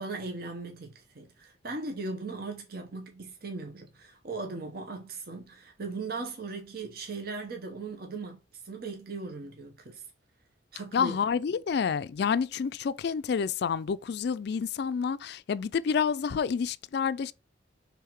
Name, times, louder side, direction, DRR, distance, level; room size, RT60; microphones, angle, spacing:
voice 1, 0.0-10.0 10.7-11.2, right 3 dB, 55° right, 1.0 m, -38 dB
voice 2, 10.9-17.3, left 6 dB, 60° left, 0.4 m, -29 dB
5.7 x 3.6 x 4.6 m
head